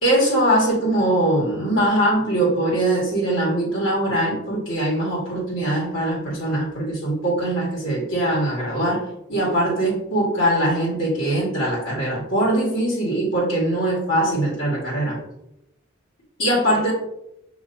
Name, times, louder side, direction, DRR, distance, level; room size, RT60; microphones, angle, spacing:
voice 1, 0.0-9.0 9.3-15.2 16.4-16.9, right 1 dB, 70° left, -7 dB, 1.6 m, -22 dB
6.6 x 2.9 x 2.5 m, 0.84 s
head